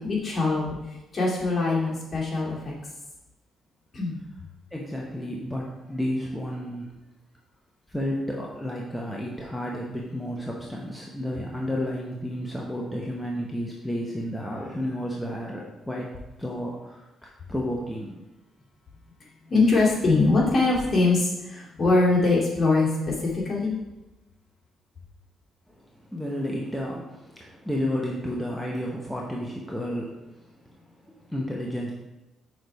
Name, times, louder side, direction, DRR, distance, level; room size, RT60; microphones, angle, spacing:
voice 1, 0.0-2.7 3.9-4.2 19.5-23.7, left 3 dB, 40° left, -4 dB, 2.2 m, -23 dB
voice 2, 4.7-6.9 7.9-16.1 16.4-18.2 26.1-30.1 31.1-31.9, equal, ahead, -3 dB, 0.9 m, -31 dB
6.4 x 3.3 x 4.6 m, 1.0 s
cardioid pair, 90°, 0 cm